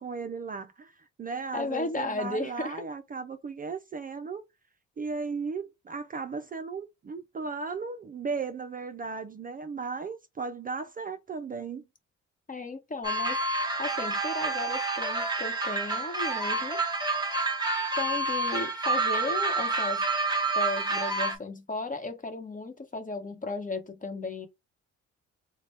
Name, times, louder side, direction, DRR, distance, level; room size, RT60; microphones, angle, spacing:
voice 1, 0.0-4.4 5.0-11.8, right 4 dB, 30° right, 0.4 m, -36 dB
voice 2, 1.5-2.8 12.5-13.4 13.8-16.8 18.0-20.1 20.5-24.5, left 3 dB, 25° left, 1.0 m, -35 dB
sound 1, 13.0-21.4, right 3 dB, 15° right, 1.0 m, -28 dB
4.1 x 2.2 x 3.3 m
cardioid pair, 90°, 30 cm